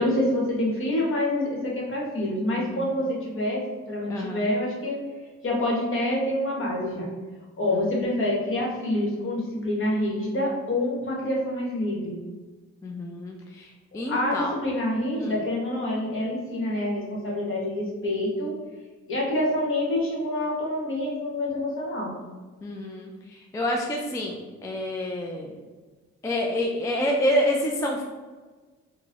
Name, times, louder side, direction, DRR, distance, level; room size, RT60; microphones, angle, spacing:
voice 1, 0.0-5.0 5.4-7.1 7.6-12.1 13.9-18.6 19.1-22.2, left 1 dB, 45° left, -3 dB, 1.1 m, -27 dB
voice 2, 2.7-3.0 4.1-4.4 12.8-14.5 15.2-15.3 22.6-25.6 26.2-28.0, equal, 10° left, 0 dB, 0.3 m, -28 dB
3.8 x 2.1 x 2.9 m, 1.3 s
cardioid pair, 90°, 30 cm